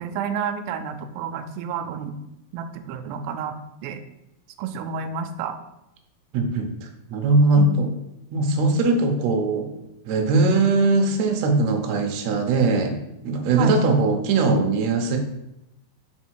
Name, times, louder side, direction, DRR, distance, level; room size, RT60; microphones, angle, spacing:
voice 1, 0.0-2.2 2.5-3.6 3.8-4.0 4.6-5.6 7.6-7.8 13.6-13.8, right 7 dB, 90° right, 8 dB, 2.4 m, -30 dB
voice 2, 6.3-7.9 8.3-9.7 10.1-13.0 13.2-15.2, right 3 dB, 70° right, 3 dB, 1.7 m, -20 dB
5.3 x 4.1 x 4.5 m, 0.87 s
omnidirectional pair, 4.1 m